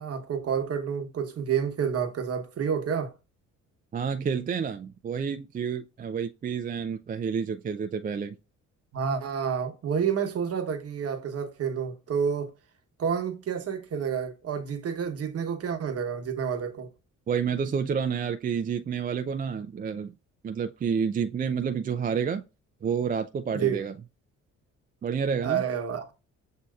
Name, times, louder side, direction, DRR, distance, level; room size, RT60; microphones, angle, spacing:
voice 1, 0.0-3.1 8.9-12.5 13.0-16.9 23.5-23.8 25.4-26.1, right 7 dB, 50° right, 1.1 m, -29 dB
voice 2, 3.9-8.4 17.3-20.1 20.4-22.4 22.8-24.0 25.0-25.6, right 6 dB, 30° right, 0.4 m, -29 dB
7.5 x 2.7 x 2.3 m
cardioid pair, 90°, 30 cm